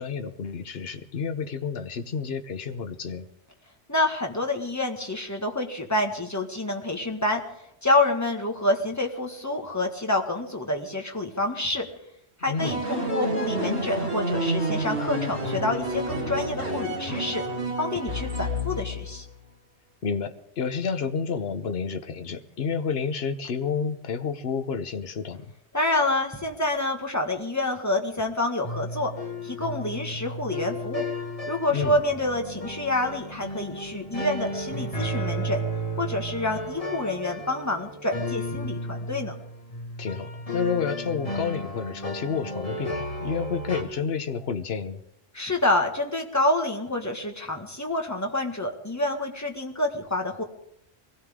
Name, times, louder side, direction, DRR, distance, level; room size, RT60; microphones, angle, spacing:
voice 1, 0.0-3.3 12.5-12.8 20.0-25.5 31.7-32.0 40.0-45.0, left 6 dB, 65° left, 8 dB, 1.2 m, -30 dB
voice 2, 3.9-7.4 7.8-11.9 12.4-17.4 17.8-19.3 25.7-29.1 29.4-31.1 31.5-35.6 36.0-39.3 45.3-50.4, left 2 dB, 15° left, 1 dB, 1.7 m, -27 dB
sound 1, 12.6-19.2, right 1 dB, 75° right, 5.1 m, -29 dB
sound 2, 28.6-43.8, equal, 35° left, 2.0 m, -33 dB
23.0 x 17.0 x 3.7 m, 0.76 s
omnidirectional pair, 1.1 m